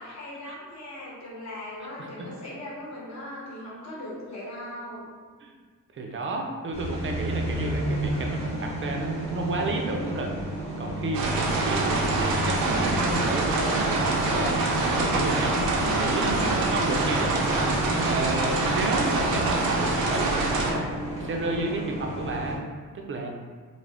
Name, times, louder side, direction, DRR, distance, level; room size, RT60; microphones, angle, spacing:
voice 1, 0.0-5.1, left 1 dB, 50° left, -6 dB, 0.9 m, -39 dB
voice 2, 5.9-10.3 10.8-14.6 14.8-17.5 17.9-22.6 22.9-23.3, right 2 dB, 35° right, 1 dB, 0.4 m, -31 dB
sound 1, 6.7-22.6, right 1 dB, 20° left, 0.8 m, -32 dB
sound 2, 11.1-20.7, right 2 dB, 90° right, 0.5 m, -25 dB
2.4 x 2.0 x 3.3 m, 1.5 s
cardioid pair, 80°, 34 cm